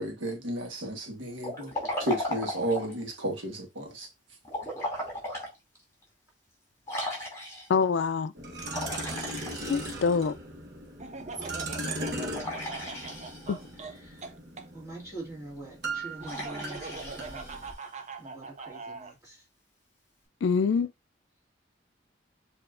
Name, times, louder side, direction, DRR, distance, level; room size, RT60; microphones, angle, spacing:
voice 1, 0.0-1.7 2.0-4.1, right 1 dB, 80° right, 1.3 m, -32 dB
Liquid, 1.4-3.0 4.5-5.5 6.0-6.1 6.9-7.8 8.7-10.3 12.3-13.7 16.2-17.9, left 1 dB, 15° left, 2.6 m, -36 dB
voice 2, 7.7-8.3 9.6-10.4 13.5-13.6 20.4-20.9, left 5 dB, 70° left, 0.4 m, -25 dB
sound 1, 8.3-17.7, right 1 dB, 60° right, 1.1 m, -38 dB
Laughter, 11.0-14.7 16.2-19.1, right 4 dB, 35° right, 0.5 m, -42 dB
voice 3, 13.8-14.3 14.7-17.7 18.2-19.5, right 2 dB, 15° right, 2.0 m, -45 dB
6.8 x 2.8 x 2.5 m
head